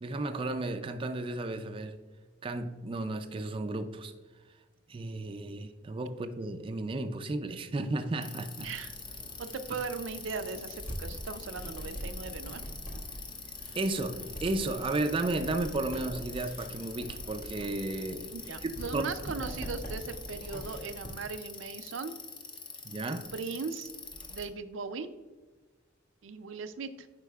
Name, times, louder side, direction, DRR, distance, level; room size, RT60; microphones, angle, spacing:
voice 1, 0.0-2.0 2.4-4.1 4.9-8.7 13.8-18.3 18.6-19.4 22.8-23.3, right 2 dB, 30° right, 7 dB, 0.3 m, -33 dB
Bicycle, 8.2-24.4, left 4 dB, 25° left, 0.6 m, -45 dB
sound 1, 8.6-21.1, equal, 40° left, 1.7 m, -44 dB
voice 2, 8.6-9.0 9.4-12.6 18.3-22.2 23.3-23.9 24.3-25.1 26.2-27.1, right 4 dB, 90° right, 10 dB, 0.5 m, -38 dB
8.0 x 5.1 x 2.3 m, 1.3 s
head